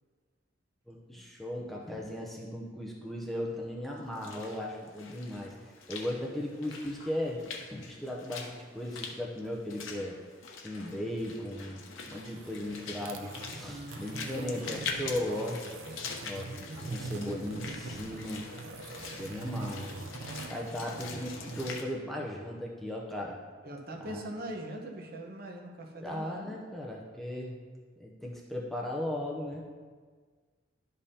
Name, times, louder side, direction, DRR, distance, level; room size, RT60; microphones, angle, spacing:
voice 1, 0.9-5.5 5.9-10.2 10.6-15.6 16.2-16.5 16.9-18.5 19.2-19.9 20.5-23.4 24.1-24.2 26.0-27.6 28.0-29.6, left 1 dB, ahead, -2 dB, 0.6 m, -37 dB
Walk footsteps / Splash splatter, 4.0-21.8, left 4 dB, 75° left, 0.9 m, -44 dB
sound 1, 11.9-21.8, right 3 dB, 85° right, 0.6 m, -43 dB
voice 2, 13.6-15.1 23.6-26.5, right 1 dB, 45° right, 1 dB, 0.9 m, -42 dB
11.5 x 5.3 x 2.8 m, 1.5 s
head